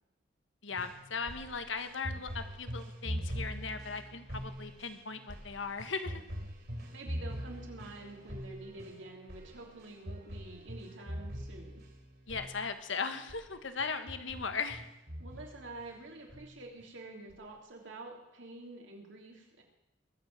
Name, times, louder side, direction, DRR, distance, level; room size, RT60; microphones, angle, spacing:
voice 1, 0.6-6.2 12.3-14.8, left 5 dB, 75° left, 9 dB, 1.5 m, -38 dB
sound 1, 0.7-12.9 13.3-13.5 13.8-15.9 16.3-16.9 17.3-17.4, equal, 55° right, 4.3 m, -43 dB
voice 2, 6.9-11.8 15.2-19.6, right 2 dB, 75° right, 1 dB, 3.4 m, -48 dB
22.0 x 7.7 x 7.8 m, 0.88 s
head